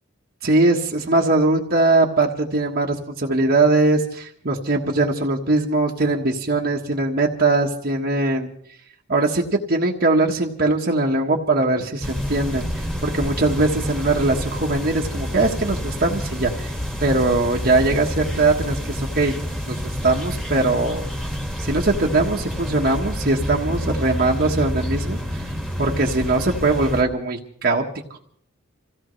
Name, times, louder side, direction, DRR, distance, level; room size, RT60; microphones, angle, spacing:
voice 1, 0.4-8.5 9.1-19.3 19.7-21.1 21.6-25.4 25.8-27.8 28.1-28.2, right 2 dB, 45° right, -1 dB, 1.4 m, -21 dB
sound 1, 12.0-27.0, equal, 5° left, 1.8 m, -28 dB
26.5 x 16.5 x 3.2 m, 0.63 s
head